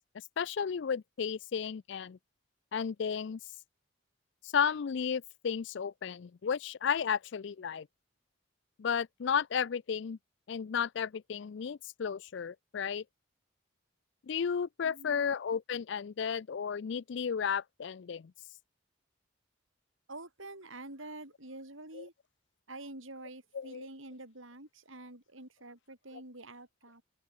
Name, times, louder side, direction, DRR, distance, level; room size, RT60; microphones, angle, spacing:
voice 1, 0.4-2.2 2.7-3.4 4.4-7.9 8.8-10.2 10.5-13.0 14.2-18.3 21.9-22.0 23.5-23.9 26.1-26.2, left 7 dB, 60° left, 0.4 m, -33 dB
voice 2, 14.8-15.3 20.1-22.1 22.7-27.0, right 2 dB, 75° right, 7.4 m, -47 dB
open air
head